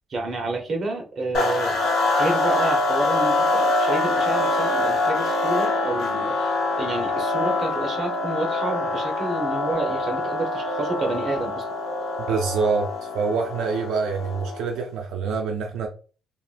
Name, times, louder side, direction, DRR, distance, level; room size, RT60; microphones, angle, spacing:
voice 1, 0.1-1.8 2.1-11.6, right 2 dB, 40° right, 0.9 m, -29 dB
sound 1, 1.3-14.7, left 2 dB, 70° left, 0.9 m, -25 dB
sound 2, 1.8-3.7 4.0-5.9 6.2-8.1 8.5-10.3 10.7-12.5, right 4 dB, 5° right, 1.5 m, -37 dB
voice 2, 12.3-15.9, right 5 dB, 80° right, 0.4 m, -26 dB
2.8 x 2.4 x 2.3 m
cardioid pair, 115°, 0 cm